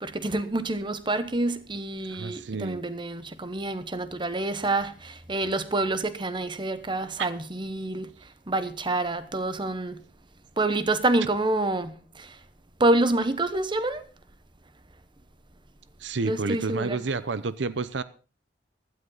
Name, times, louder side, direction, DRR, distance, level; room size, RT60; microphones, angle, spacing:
voice 1, 0.0-8.1 8.5-10.0 10.6-12.4 12.8-14.0 16.2-17.0, right 2 dB, 25° right, 1.1 m, -27 dB
voice 2, 2.1-2.8 7.2-7.3 16.0-18.0, right 4 dB, 80° right, 0.7 m, -30 dB
16.0 x 12.5 x 4.0 m
head